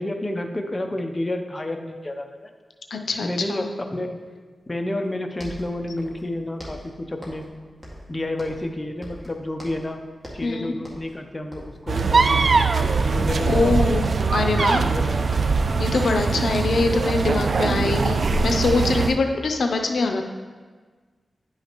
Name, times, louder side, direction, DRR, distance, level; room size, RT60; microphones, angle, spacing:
voice 1, 0.0-2.3 3.2-3.7 3.9-4.2 4.7-7.5 8.1-10.0 10.3-14.0 14.4-15.4, left 1 dB, 25° left, 4 dB, 0.6 m, -30 dB
voice 2, 2.9-3.6 10.4-10.7 13.5-14.8 15.8-20.2, left 3 dB, 80° left, 5 dB, 0.5 m, -23 dB
sound 1, 5.1-5.2 5.3-6.3 6.6-7.5 7.8-8.8 9.0-9.9 10.2-10.5 10.8-11.2 11.5-12.4 12.7-13.1 13.4-13.7 14.0-15.7 15.9-17.6, equal, 10° right, 1.8 m, -41 dB
sound 2, 11.9-19.2, right 4 dB, 60° right, 0.3 m, -21 dB
9.9 x 5.6 x 3.0 m, 1.5 s
wide cardioid pair, 80°, 0 cm